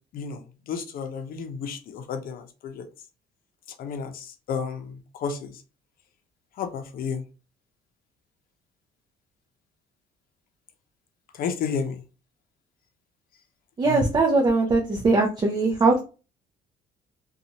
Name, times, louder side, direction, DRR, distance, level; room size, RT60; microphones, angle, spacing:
voice 1, 0.7-2.8 3.8-4.1 4.5-4.8 5.2-5.4 6.6-7.2 11.4-11.9, left 6 dB, 60° left, 7 dB, 0.6 m, -31 dB
voice 2, 13.8-16.0, right 3 dB, 25° right, 1 dB, 0.6 m, -21 dB
2.7 x 2.3 x 2.8 m, 0.33 s
cardioid pair, 110°, 17 cm